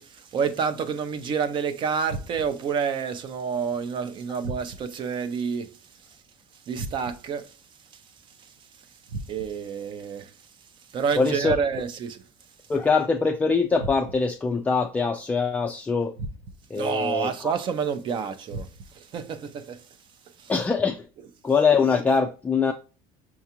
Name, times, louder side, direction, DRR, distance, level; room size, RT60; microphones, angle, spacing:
voice 1, 0.0-5.7 6.7-7.5 9.3-10.3 10.9-12.2 16.8-18.7 18.9-19.8 20.4-20.5, right 6 dB, 40° right, 0.5 m, -28 dB
sound 1, 2.1-2.7 4.4-5.1 6.8-7.4 9.1-9.7 11.4-12.1 13.8-14.4 16.2-16.8 18.5-19.1, right 2 dB, 80° right, 0.6 m, -38 dB
voice 2, 11.2-11.6 12.7-16.1 16.7-17.5 20.5-21.0 21.4-22.7, left 4 dB, 10° left, 0.3 m, -23 dB
5.7 x 2.4 x 2.8 m
cardioid pair, 145°, 13 cm